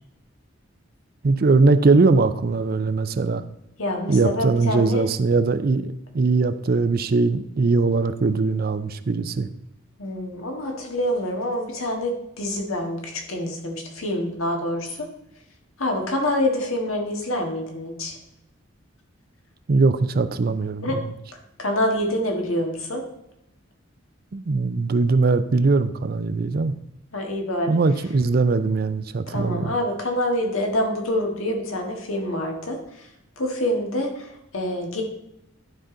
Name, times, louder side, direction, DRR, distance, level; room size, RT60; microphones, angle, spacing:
voice 1, 1.2-3.4 4.1-9.5 19.7-20.9 24.3-26.7 27.7-29.7, right 3 dB, 45° right, 13 dB, 0.5 m, -20 dB
voice 2, 3.8-5.1 10.0-15.1 15.8-18.2 20.8-21.0 21.3-23.0 27.1-27.7 29.3-33.1 33.4-35.0, left 1 dB, 80° left, 2 dB, 1.7 m, -26 dB
11.5 x 5.1 x 3.8 m, 0.82 s
head